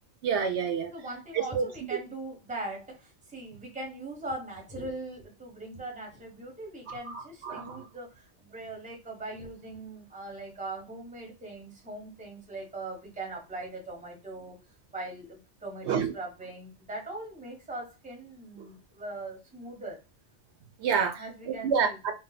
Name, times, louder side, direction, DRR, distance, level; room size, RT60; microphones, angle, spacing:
voice 1, 0.2-0.9 1.3-1.7 7.1-7.8 15.9-16.1 20.8-21.2 21.5-22.1, right 6 dB, 75° right, 6 dB, 0.8 m, -28 dB
voice 2, 0.9-14.6 14.9-20.0 21.2-22.1, right 2 dB, 5° right, 0 dB, 0.8 m, -40 dB
2.7 x 2.1 x 3.9 m, 0.28 s
omnidirectional pair, 1.2 m